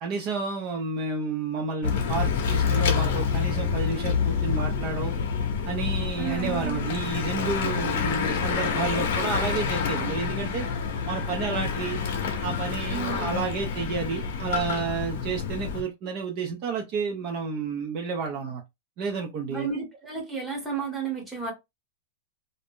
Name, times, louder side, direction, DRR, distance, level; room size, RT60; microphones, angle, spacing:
voice 1, 0.0-5.1 5.7-10.7 11.1-12.0 12.4-18.6 19.0-19.7, right 4 dB, 35° right, 0.5 m, -31 dB
Bicycle / Mechanisms, 1.8-15.8, left 6 dB, 60° left, 0.7 m, -27 dB
voice 2, 6.2-7.0 12.9-13.4 19.5-21.5, right 5 dB, 5° right, 1.0 m, -32 dB
2.5 x 2.0 x 3.5 m
supercardioid pair, 165°, 0 cm